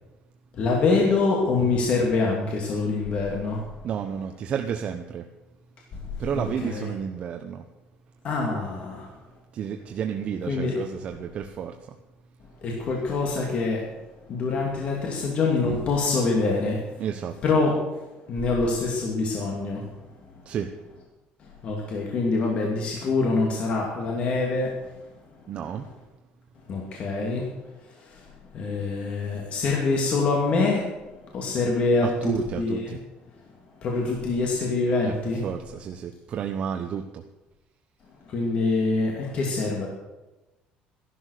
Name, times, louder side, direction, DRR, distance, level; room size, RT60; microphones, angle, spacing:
voice 1, 0.5-3.6 5.9-6.9 8.2-9.1 10.4-10.8 12.6-13.9 14.3-16.8 17.4-17.7 18.3-19.9 21.6-24.8 25.6-25.9 26.7-27.5 28.0-28.2 28.5-30.9 31.3-32.9 33.8-35.5 38.3-39.9, left 3 dB, 40° left, -1 dB, 2.6 m, -25 dB
voice 2, 3.8-5.3 6.2-7.6 9.5-12.0 17.0-17.4 20.4-20.7 25.5-25.9 32.0-33.0 35.0-37.2, right 8 dB, 40° right, 5 dB, 0.9 m, -31 dB
15.0 x 11.5 x 6.7 m, 1.1 s
cardioid pair, 155°, 3 cm